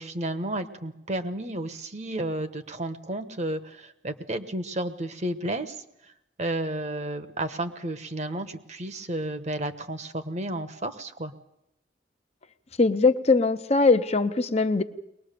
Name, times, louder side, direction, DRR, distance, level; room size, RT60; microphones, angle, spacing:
voice 1, 0.0-5.8 6.4-11.3, right 1 dB, 40° right, 10 dB, 1.2 m, -32 dB
voice 2, 12.8-14.8, left 3 dB, 35° left, 9 dB, 0.8 m, -21 dB
22.5 x 20.0 x 6.8 m, 0.82 s
head